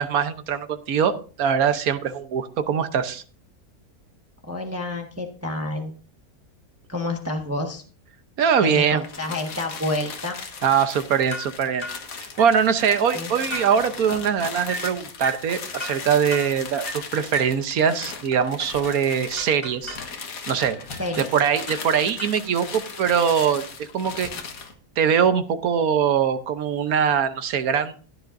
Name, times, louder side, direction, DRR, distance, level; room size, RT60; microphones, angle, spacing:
voice 1, 0.0-3.2 8.4-9.0 10.6-11.9 12.2-20.0 20.5-20.8 21.3-24.3 25.0-28.0, right 7 dB, 70° right, 10 dB, 1.4 m, -22 dB
voice 2, 4.5-6.0 6.9-7.8 8.6-10.4 13.1-13.3 21.0-21.3, left 2 dB, 10° right, 3 dB, 1.1 m, -29 dB
sound 1, 9.0-24.7, left 5 dB, 65° left, 1.8 m, -37 dB
sound 2, 11.3-11.5 11.8-12.0 12.4-12.6 12.9-13.1 13.5-13.7 14.1-14.3 14.7-14.9 15.2-15.5 15.8-16.0 16.3-16.5 16.9-17.0 17.3-17.6 18.3-19.0 19.4-20.1 20.7-21.3 21.7-22.5, equal, 35° left, 5.4 m, -35 dB
14.5 x 10.0 x 2.6 m, 0.39 s
omnidirectional pair, 1.6 m